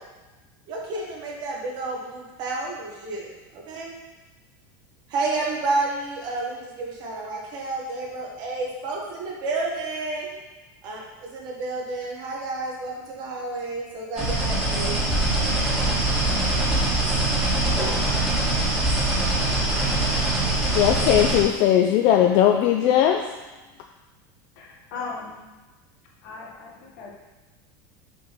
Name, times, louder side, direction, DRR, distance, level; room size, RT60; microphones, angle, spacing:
voice 1, 0.7-3.2 3.7-3.9 5.1-10.3 10.8-15.0, right 3 dB, 40° right, -2 dB, 1.6 m, -30 dB
sound 1, 14.1-21.4, right 2 dB, 10° right, 1.9 m, -23 dB
voice 2, 20.7-23.2, left 11 dB, 45° left, 3 dB, 0.4 m, -18 dB
voice 3, 24.6-25.4 26.2-27.1, left 4 dB, 60° left, -2 dB, 1.7 m, -37 dB
6.7 x 3.7 x 5.8 m, 1.2 s
supercardioid pair, 165°, 11 cm